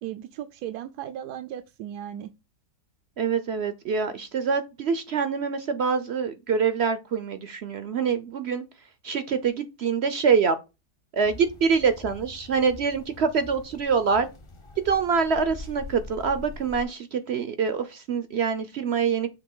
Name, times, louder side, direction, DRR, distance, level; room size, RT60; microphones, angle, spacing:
voice 1, 0.0-2.3, right 11 dB, 80° right, 1.1 m, -36 dB
voice 2, 3.2-8.6 9.0-10.6 11.1-14.3 14.8-19.3, right 6 dB, 60° right, 0.7 m, -25 dB
sound 1, 11.2-16.8, left 3 dB, 25° left, 0.6 m, -43 dB
7.0 x 2.9 x 5.3 m
omnidirectional pair, 1.7 m